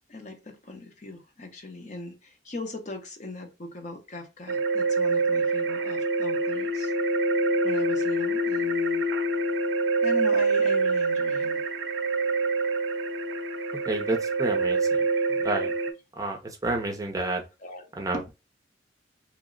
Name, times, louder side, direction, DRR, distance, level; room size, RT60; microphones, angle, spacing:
voice 1, 0.1-6.9 7.6-9.1 10.0-11.6 15.0-15.1 17.6-17.8 18.1-18.3, left 2 dB, 40° left, 0.6 m, -39 dB
sound 1, 4.5-15.9, right 2 dB, 85° right, 0.5 m, -26 dB
voice 2, 13.9-14.8 15.4-15.7 16.2-16.4 16.6-17.4 18.0-18.3, right 2 dB, 20° right, 0.5 m, -29 dB
3.0 x 2.0 x 3.6 m
head